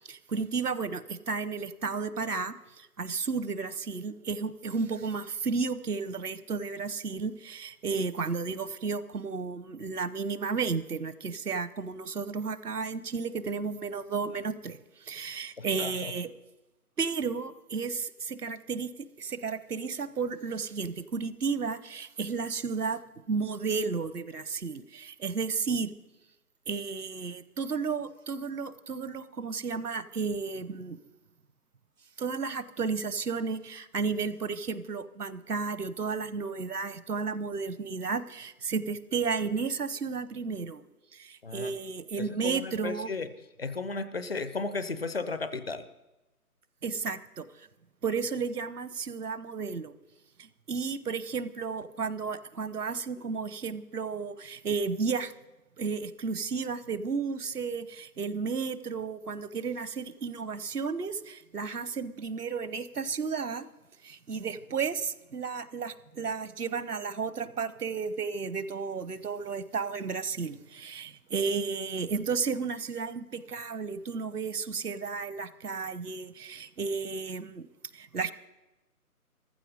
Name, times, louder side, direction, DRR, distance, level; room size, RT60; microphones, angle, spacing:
voice 1, 0.1-16.3 17.0-18.9 19.2-23.0 23.3-25.9 26.7-31.0 32.2-40.8 41.1-43.1 46.8-47.7 48.0-49.9 50.4-55.3 55.8-63.7 64.0-77.7 77.9-78.3, right 5 dB, 80° right, 16 dB, 0.9 m, -33 dB
voice 2, 15.6-16.1 41.4-41.7 42.3-43.3 43.6-45.8, left 3 dB, 40° left, 12 dB, 0.6 m, -34 dB
15.0 x 12.5 x 5.3 m, 1.0 s
figure-of-eight pair, 155°, 45 cm